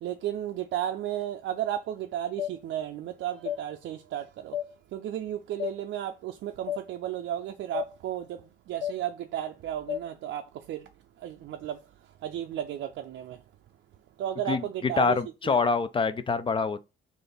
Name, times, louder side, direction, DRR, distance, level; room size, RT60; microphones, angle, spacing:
voice 1, 0.0-4.6 4.9-10.9 11.2-13.4 14.2-15.7, right 11 dB, 65° right, 0.4 m, -34 dB
sound 1, 2.4-2.5 3.4-3.6 4.5-4.7 5.6-5.7 6.7-6.8 7.7-7.9 8.8-9.0 9.9-10.0, left 11 dB, 70° left, 0.6 m, -31 dB
voice 2, 15.0-16.8, left 4 dB, 25° left, 0.4 m, -25 dB
3.4 x 2.5 x 3.9 m
cardioid pair, 90°, 20 cm